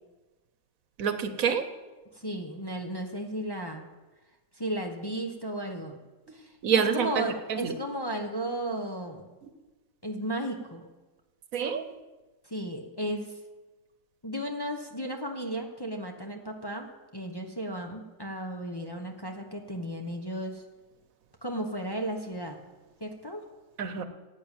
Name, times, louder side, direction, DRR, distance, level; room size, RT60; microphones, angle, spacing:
voice 1, 1.0-1.7 6.6-7.1 7.5-7.7 11.5-11.9 23.8-24.0, right 7 dB, 70° right, 9 dB, 1.3 m, -27 dB
voice 2, 2.1-3.9 4.6-6.0 6.3-9.3 10.0-10.9 12.4-13.3 14.2-20.6 21.4-22.6 23.0-23.4, right 1 dB, 20° left, 2 dB, 0.9 m, -34 dB
11.0 x 8.7 x 9.0 m, 1.2 s
omnidirectional pair, 1.5 m